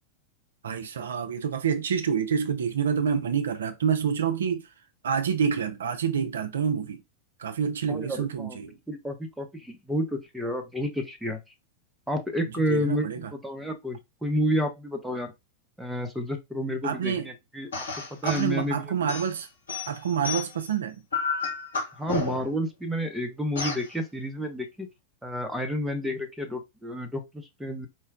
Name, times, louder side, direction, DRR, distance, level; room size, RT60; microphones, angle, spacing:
voice 1, 0.6-4.7 5.0-7.0 7.4-8.8 12.7-13.3 16.8-17.3 18.2-19.5 19.9-21.0, right 7 dB, 65° right, 0.5 m, -27 dB
voice 2, 7.9-8.6 8.9-11.4 12.1-15.3 15.8-18.8 22.0-24.9 25.2-27.9, equal, 5° right, 0.8 m, -30 dB
sound 1, 17.7-18.5 19.1-20.7 21.1-22.6 23.6-23.9, left 4 dB, 70° left, 0.9 m, -31 dB
4.4 x 2.2 x 3.4 m
figure-of-eight pair, 90°, 0 cm